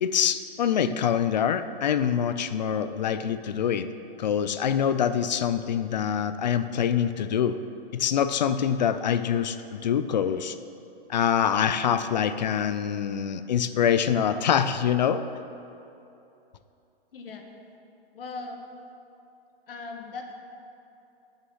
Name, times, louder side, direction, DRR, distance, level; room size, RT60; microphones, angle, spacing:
voice 1, 0.0-3.9 4.2-7.6 7.9-10.6 11.1-15.2, left 8 dB, 50° left, 12 dB, 0.4 m, -25 dB
voice 2, 17.1-17.5 18.1-18.6 19.7-20.3, left 3 dB, 70° left, 3 dB, 1.4 m, -38 dB
8.5 x 6.6 x 5.5 m, 2.8 s
hypercardioid pair, 175°, 30 cm